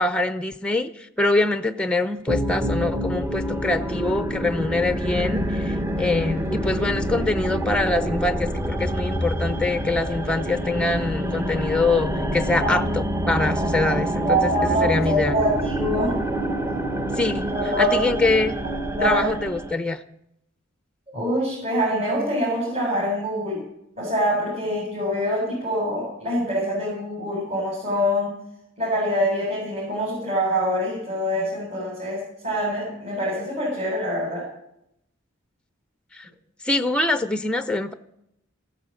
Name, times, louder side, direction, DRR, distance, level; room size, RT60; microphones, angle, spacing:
voice 1, 0.0-14.5 14.8-15.3 17.2-17.4 17.8-18.5 19.0-20.0 36.1-36.3 36.6-37.9, left 2 dB, 5° left, 11 dB, 0.6 m, -24 dB
sound 1, 2.3-19.7, right 1 dB, 10° right, 1.0 m, -27 dB
voice 2, 12.6-12.9 14.2-16.3 17.5-18.0 18.9-19.2 21.1-23.6 24.0-28.3 28.8-34.4, equal, 35° right, -7 dB, 7.5 m, -25 dB
14.5 x 13.0 x 7.6 m, 0.81 s
head